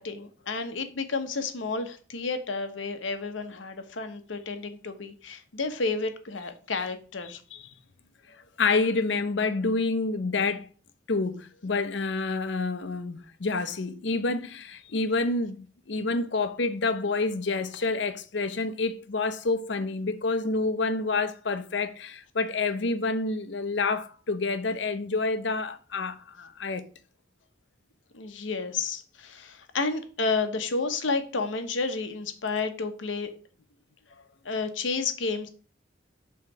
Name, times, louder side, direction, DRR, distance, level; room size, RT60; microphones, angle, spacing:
voice 1, 0.0-7.4 28.1-33.3 34.4-35.5, left 4 dB, 90° left, 1.0 m, -31 dB
voice 2, 7.3-7.6 8.3-10.7 11.1-26.9, left 3 dB, 70° left, 0.7 m, -28 dB
5.7 x 3.9 x 5.9 m
head